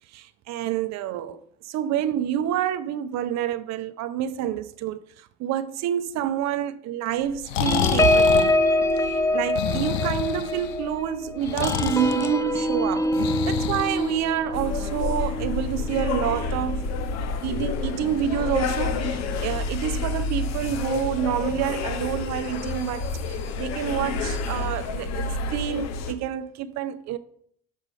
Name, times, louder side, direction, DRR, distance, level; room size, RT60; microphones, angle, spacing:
voice 1, 0.1-1.4 1.6-8.6 9.0-13.1 13.5-16.9 17.4-27.2, right 10 dB, 60° right, 0.6 m, -28 dB
Breathing, 7.2-14.7, left 9 dB, 85° left, 0.6 m, -29 dB
sound 1, 7.7-16.6 17.0-17.2 17.5-17.8, left 1 dB, 10° left, 0.6 m, -25 dB
sound 2, 14.5-26.1, left 4 dB, 60° left, 1.0 m, -29 dB
6.5 x 4.8 x 5.3 m
supercardioid pair, 80°, 31 cm